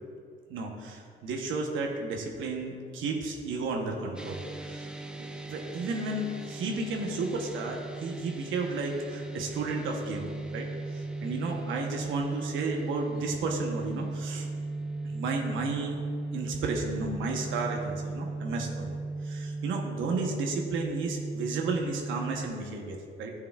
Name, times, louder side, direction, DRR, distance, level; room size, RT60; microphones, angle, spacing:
voice 1, 0.5-4.9 5.2-14.5 15.1-16.0 16.3-19.0 19.2-23.3, right 3 dB, 80° right, 1 dB, 0.9 m, -33 dB
sound 1, 4.2-22.5, right 2 dB, 5° right, 0.5 m, -37 dB
10.5 x 6.7 x 2.3 m, 2.2 s
cardioid pair, 90°, 20 cm